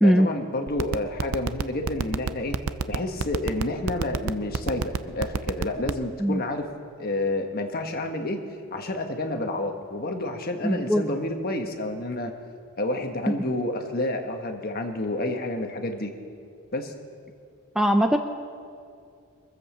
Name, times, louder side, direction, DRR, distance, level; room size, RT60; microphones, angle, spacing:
voice 1, 0.0-2.6 2.9-6.7 7.0-8.4 8.7-12.3 12.8-16.1 16.7-16.9, left 2 dB, 40° left, 4 dB, 1.3 m, -29 dB
sound 1, 0.7-6.0, right 5 dB, 75° right, 0.5 m, -25 dB
voice 2, 10.6-11.0 17.8-18.2, equal, ahead, 5 dB, 0.5 m, -20 dB
23.0 x 7.9 x 7.3 m, 2.4 s
head